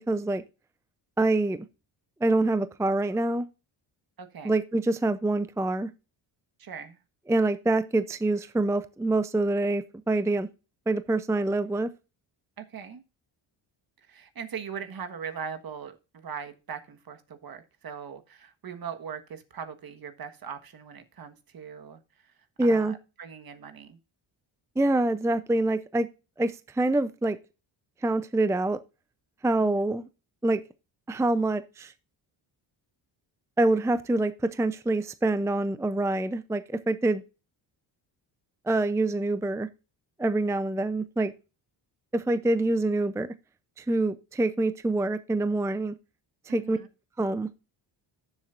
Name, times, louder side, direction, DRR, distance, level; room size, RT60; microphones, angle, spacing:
voice 1, 0.1-0.4 1.2-1.7 2.2-3.5 4.4-5.9 7.3-10.5 10.9-11.9 22.6-22.9 24.8-26.1 26.4-27.4 28.0-28.8 29.4-30.1 30.4-30.6 31.1-31.9 33.6-37.2 38.7-39.7 40.2-41.3 42.1-43.3 43.8-45.9 46.5-46.8 47.2-47.5, right 2 dB, 5° right, 0.5 m, -25 dB
voice 2, 4.2-4.5 6.6-7.0 12.6-13.0 14.1-22.3 22.6-24.0 29.6-29.8 46.5-46.9, right 7 dB, 50° right, 1.5 m, -40 dB
13.0 x 7.4 x 2.6 m
cardioid pair, 85°, 47 cm